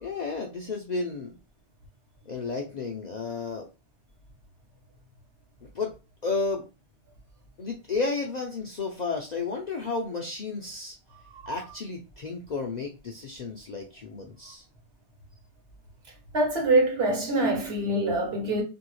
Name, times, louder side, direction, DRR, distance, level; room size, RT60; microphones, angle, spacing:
voice 1, 0.0-1.3 2.3-3.7 5.6-5.9 6.2-6.6 7.6-11.0 11.5-14.6, left 4 dB, 55° left, 0.5 m, -32 dB
voice 2, 16.3-18.6, right 2 dB, 60° right, 1.2 m, -24 dB
2.8 x 2.7 x 3.0 m
omnidirectional pair, 1.2 m